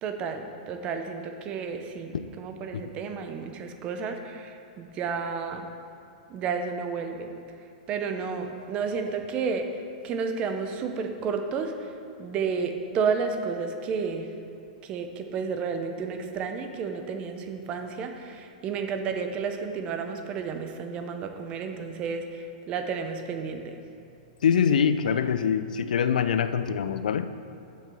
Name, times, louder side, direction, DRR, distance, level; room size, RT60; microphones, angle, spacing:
voice 1, 0.0-5.7 6.3-7.3 7.9-11.9 12.2-14.3 14.8-23.8, right 5 dB, 25° right, 6 dB, 0.7 m, -31 dB
voice 2, 24.4-27.3, left 7 dB, 90° left, 12 dB, 0.5 m, -24 dB
7.5 x 5.7 x 6.8 m, 2.6 s
hypercardioid pair, 155°, 4 cm